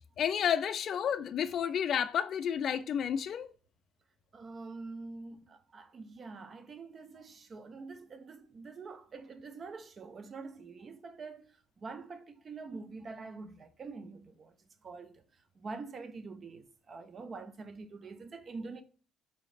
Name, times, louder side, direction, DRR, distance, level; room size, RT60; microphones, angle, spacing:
voice 1, 0.2-3.5, left 8 dB, 50° left, 0.3 m, -31 dB
voice 2, 4.3-14.6 14.8-18.8, right 4 dB, 35° right, 0.4 m, -45 dB
4.0 x 3.0 x 2.4 m
cardioid pair, 130°, 0 cm